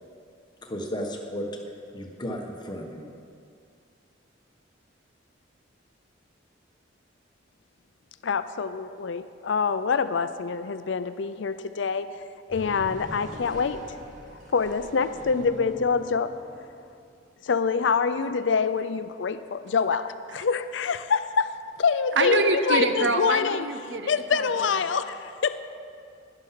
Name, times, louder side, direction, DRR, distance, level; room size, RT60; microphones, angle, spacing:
voice 1, 0.6-1.5 1.9-3.1, equal, 25° left, 1 dB, 1.3 m, -34 dB
voice 2, 8.2-12.1 12.5-13.8 14.5-16.3 17.4-23.7 24.1-25.6, left 5 dB, 75° left, 12 dB, 0.5 m, -26 dB
sound 1, 12.5-17.0, left 1 dB, 45° right, 1.9 m, -43 dB
voice 3, 22.2-24.8, right 3 dB, 65° right, 7 dB, 0.8 m, -26 dB
11.5 x 10.5 x 5.8 m, 2.4 s
head